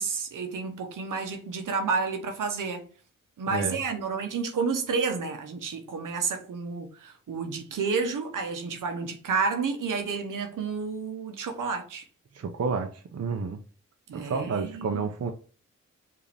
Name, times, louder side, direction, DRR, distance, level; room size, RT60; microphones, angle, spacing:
voice 1, 0.0-2.9 3.4-12.0 14.1-15.0, right 5 dB, 75° right, 0.9 m, -30 dB
voice 2, 3.5-3.8 12.3-13.6 14.1-15.3, right 5 dB, 50° right, 0.7 m, -30 dB
4.9 x 2.8 x 3.3 m
cardioid pair, 45°, 32 cm